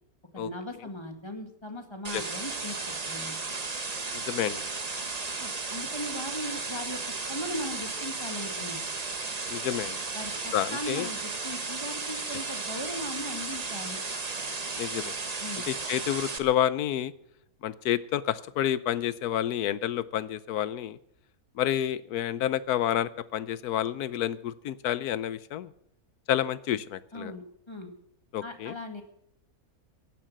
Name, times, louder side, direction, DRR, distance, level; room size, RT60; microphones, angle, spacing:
voice 1, 0.3-3.4 5.4-7.0 7.3-8.8 10.1-14.0 15.4-15.7 27.1-27.9 28.4-29.0, left 1 dB, 20° left, 5 dB, 1.9 m, -38 dB
sound 1, 2.0-16.4, right 4 dB, 30° right, 1.1 m, -34 dB
voice 2, 4.3-4.6 9.5-10.0 10.5-11.1 14.8-15.1 15.7-17.1 17.6-21.0 21.6-25.7 26.3-27.3 28.3-28.7, left 11 dB, 85° left, 16 dB, 1.3 m, -29 dB
16.0 x 10.5 x 7.5 m, 0.74 s
omnidirectional pair, 1.6 m